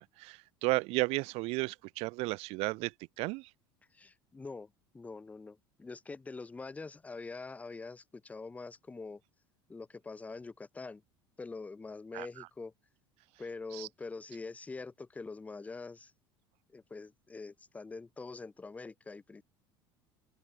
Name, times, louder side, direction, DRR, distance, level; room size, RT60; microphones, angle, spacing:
voice 1, 0.0-3.5 12.1-12.3 13.7-13.9, right 24 dB, 50° right, 0.4 m, -34 dB
voice 2, 3.9-9.2 9.7-11.0 11.4-12.7 13.4-16.1 16.7-19.4, left 3 dB, 10° left, 0.4 m, -44 dB
open air
figure-of-eight pair, 70°, 13 cm